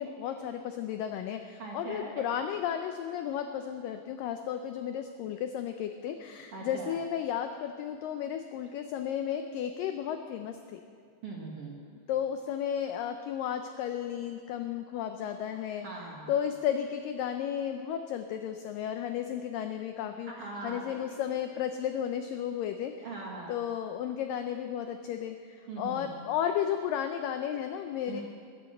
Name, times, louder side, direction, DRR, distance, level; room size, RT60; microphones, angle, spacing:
voice 1, 0.0-10.8 12.1-15.9 16.3-20.3 20.6-22.9 23.5-28.2, left 9 dB, 85° left, 7 dB, 1.9 m, -33 dB
voice 2, 1.6-2.3 6.5-7.0 11.2-11.8 15.5-16.3 20.3-21.4 23.0-23.6 25.7-26.1 28.1-28.2, right 3 dB, 50° right, -2 dB, 2.0 m, -41 dB
20.0 x 8.9 x 7.7 m, 2.2 s
omnidirectional pair, 4.7 m